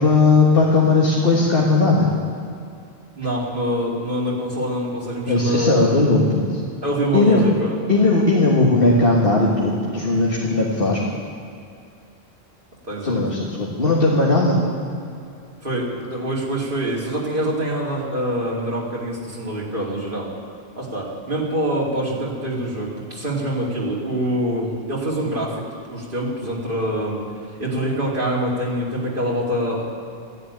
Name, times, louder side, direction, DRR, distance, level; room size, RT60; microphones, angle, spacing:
voice 1, 0.0-2.1 5.3-6.4 7.1-7.4 7.9-11.0 13.0-14.6, left 3 dB, 60° left, -4 dB, 1.9 m, -17 dB
voice 2, 3.2-5.9 6.8-7.8 12.8-13.2 15.6-20.3 20.8-25.6 25.9-29.8, equal, 55° right, -5 dB, 3.3 m, -25 dB
14.0 x 11.0 x 9.1 m, 2.5 s
omnidirectional pair, 1.1 m